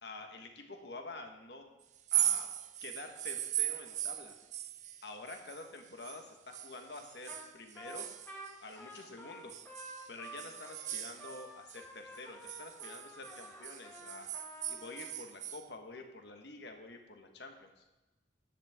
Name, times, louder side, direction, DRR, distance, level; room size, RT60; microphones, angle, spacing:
voice 1, 0.0-1.7 2.1-2.5 2.8-4.3 5.0-8.1 8.6-9.6 10.1-14.3 14.7-17.9, left 2 dB, 65° left, 4 dB, 1.4 m, -48 dB
sound 1, 2.0-6.2 6.5-9.1 9.5-11.8 12.1-15.6, right 12 dB, 40° right, 0.5 m, -38 dB
Trumpet, 7.3-7.5 7.7-15.1, equal, 10° left, 1.3 m, -51 dB
13.0 x 11.0 x 3.7 m, 1.1 s
head